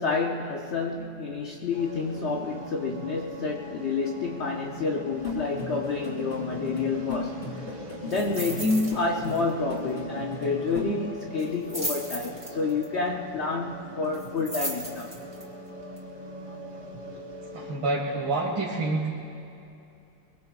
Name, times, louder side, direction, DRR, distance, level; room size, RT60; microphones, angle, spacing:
voice 1, 0.0-7.4 8.0-15.1, left 4 dB, 60° left, -1 dB, 0.7 m, -29 dB
sound 1, 1.7-17.7, equal, 50° right, 3.1 m, -42 dB
sound 2, 5.1-11.0, left 2 dB, 30° left, 3.8 m, -36 dB
sound 3, 8.1-8.9 9.2-9.5 9.8-9.9 11.4-12.8 14.1-15.4 16.0-16.1, right 1 dB, 5° right, 2.5 m, -35 dB
voice 2, 17.4-19.1, right 3 dB, 80° right, -6 dB, 2.9 m, -28 dB
24.0 x 23.5 x 2.4 m, 2.7 s
omnidirectional pair, 2.2 m